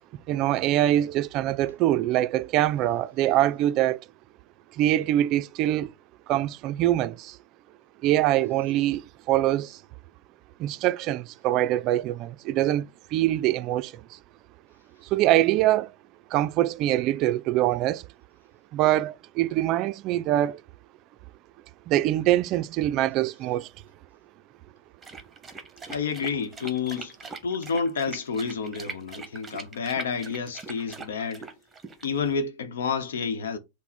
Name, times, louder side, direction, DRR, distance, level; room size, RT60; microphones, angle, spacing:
voice 1, 0.3-4.0 4.7-5.9 6.3-7.4 8.0-9.8 10.6-14.2 15.1-15.9 16.3-18.1 18.7-20.6 21.9-23.7, right 14 dB, 50° right, 0.3 m, -24 dB
sound 1, 25.0-32.3, right 4 dB, 15° right, 1.0 m, -41 dB
voice 2, 25.9-27.1 27.4-31.5 32.0-33.6, left 5 dB, 85° left, 0.8 m, -29 dB
5.8 x 2.0 x 4.2 m
hypercardioid pair, 110°, 0 cm